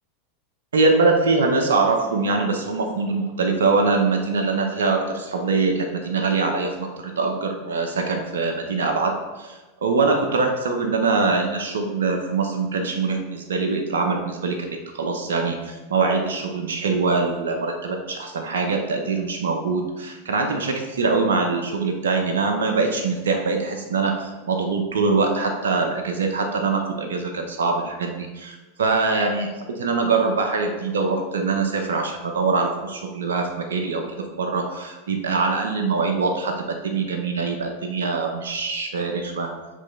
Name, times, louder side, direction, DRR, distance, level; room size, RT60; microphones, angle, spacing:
voice 1, 0.7-34.0 34.4-39.5, right 4 dB, 80° right, 3 dB, 0.8 m, -23 dB
6.4 x 3.3 x 5.3 m, 1.2 s
hypercardioid pair, 100°, 0 cm